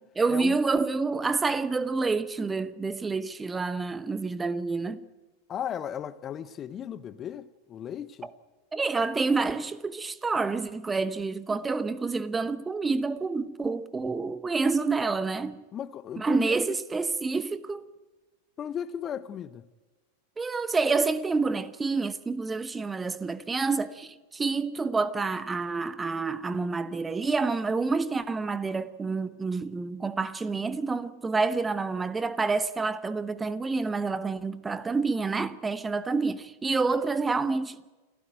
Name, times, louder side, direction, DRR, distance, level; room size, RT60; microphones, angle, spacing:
voice 1, 0.2-5.0 8.7-15.5 16.2-17.8 20.4-37.9, right 4 dB, 15° right, 0.9 m, -28 dB
voice 2, 5.5-8.3 15.7-16.6 18.6-19.6, left 9 dB, 25° left, 0.8 m, -36 dB
28.0 x 14.0 x 9.2 m
figure-of-eight pair, 90°, 0 cm